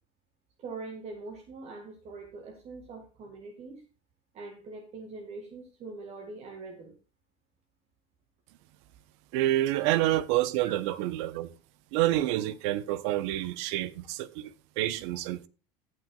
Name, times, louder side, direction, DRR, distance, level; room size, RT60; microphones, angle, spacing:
voice 1, 0.6-3.8 4.3-7.0 9.7-10.0 10.6-10.7, right 3 dB, 45° right, 2.0 m, -43 dB
voice 2, 9.3-11.5 11.9-15.5, right 15 dB, 80° right, 0.9 m, -28 dB
17.5 x 6.5 x 2.4 m
supercardioid pair, 105°, 15 cm